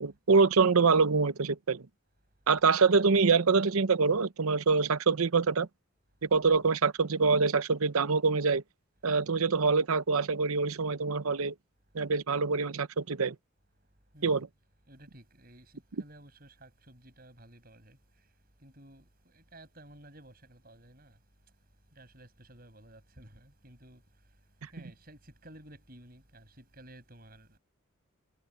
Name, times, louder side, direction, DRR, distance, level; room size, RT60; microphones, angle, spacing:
voice 1, 0.0-1.8 2.5-5.7 6.2-8.6 9.0-11.5 11.9-13.3 14.2-14.5, right 4 dB, 85° right, 0.8 m, -25 dB
voice 2, 14.9-15.7 16.0-18.0 18.6-21.2 22.0-24.0 24.7-27.6, right 1 dB, 45° right, 7.3 m, -54 dB
head